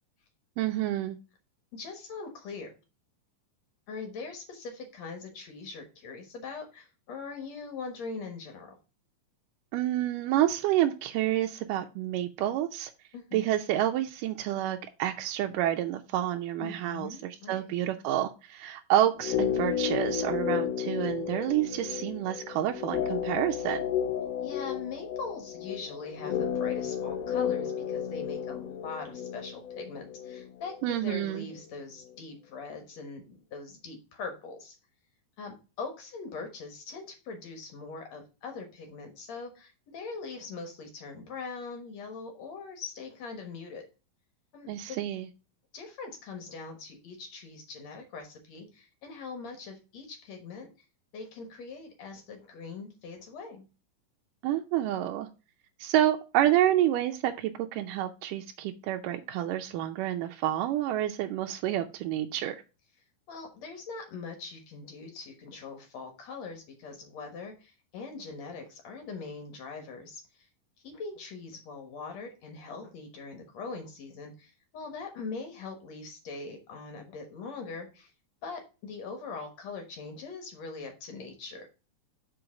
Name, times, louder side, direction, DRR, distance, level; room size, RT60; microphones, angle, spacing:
voice 1, 0.6-1.2 9.7-12.9 13.3-23.8 30.8-31.5 44.7-45.3 54.4-55.3 55.8-62.6, right 12 dB, 80° right, 2.1 m, -28 dB
voice 2, 1.7-2.7 3.9-8.7 13.1-13.5 16.6-17.8 24.4-34.8 35.4-43.9 44.5-45.0 45.7-50.7 51.1-53.6 63.3-70.5 70.8-78.1 78.4-81.7, left 4 dB, 60° left, 2.2 m, -42 dB
sound 1, 19.2-31.3 31.6-31.7, left 9 dB, 85° left, 1.4 m, -32 dB
5.6 x 5.3 x 5.8 m
omnidirectional pair, 4.0 m